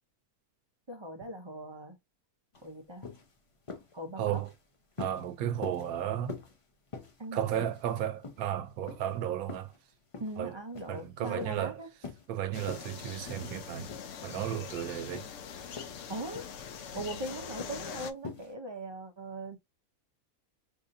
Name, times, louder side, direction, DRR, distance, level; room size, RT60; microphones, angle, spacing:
voice 1, 0.9-2.0 2.6-3.1 3.9-4.4 7.2-7.6 10.2-11.9 16.1-16.5 16.9-19.6, right 1 dB, 50° right, 0.3 m, -40 dB
sound 1, 2.5-2.7 3.0-3.3 3.7-3.9 4.3-4.6 5.0-5.3 5.6-5.9 6.3-6.6 6.9-7.2 7.6-8.0 8.2-8.5 8.9-9.1 9.5-9.8 10.1-10.4 10.8-11.1 11.4-11.6 12.0-12.3 12.6-13.0 13.3-13.6 13.9-14.2 14.5-14.8 15.1-15.4 15.7-16.1 16.3-16.6 17.0-17.2 17.6-17.9 18.2-18.5, left 4 dB, 50° left, 0.4 m, -44 dB
voice 2, 4.2-4.5 5.0-6.4 7.3-9.7 10.4-10.5 10.9-11.8 12.3-13.9 14.2-15.3, right 10 dB, 80° right, 1.1 m, -34 dB
sound 2, 12.5-18.1, left 7 dB, 65° left, 0.9 m, -43 dB
4.7 x 2.6 x 2.6 m
omnidirectional pair, 1.5 m